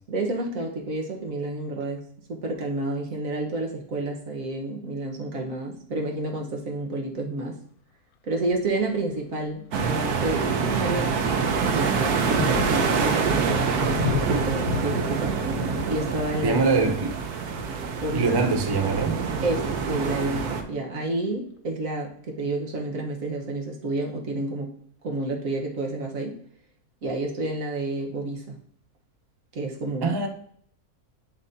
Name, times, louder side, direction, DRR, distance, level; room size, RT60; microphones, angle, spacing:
voice 1, 0.1-7.6 8.3-13.8 14.1-15.4 15.9-16.6 18.0-18.3 19.4-24.7 25.0-26.4 27.0-28.5 29.5-30.2, right 2 dB, 60° right, 1.6 m, -30 dB
Thunder, 8.5-8.8 9.4-9.6 10.0-20.6, left 7 dB, 80° left, 1.1 m, -35 dB
sound 1, 9.7-20.6, right 5 dB, 80° right, 1.3 m, -26 dB
voice 2, 16.4-17.1 18.1-19.2 30.0-30.3, right 4 dB, 35° right, 0.4 m, -23 dB
11.0 x 4.2 x 2.7 m
omnidirectional pair, 1.6 m